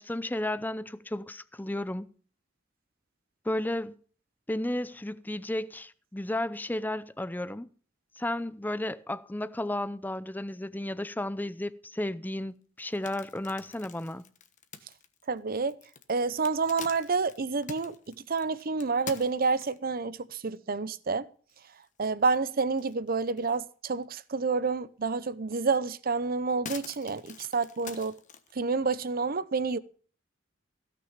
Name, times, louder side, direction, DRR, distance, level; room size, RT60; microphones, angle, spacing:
voice 1, 0.0-2.1 3.4-3.9 4.5-7.7 8.2-14.2, left 1 dB, 10° left, 0.6 m, -33 dB
sound 1, 12.8-20.0 20.5-20.6 21.1-21.2 21.5-22.3 22.7-23.6 24.0-24.1 25.5-25.6 26.0-28.5, left 6 dB, 40° left, 1.2 m, -46 dB
voice 2, 15.3-15.8 16.1-17.9 18.3-21.3 22.0-28.1 28.6-29.8, right 4 dB, 50° right, 0.7 m, -29 dB
16.5 x 6.1 x 7.2 m
head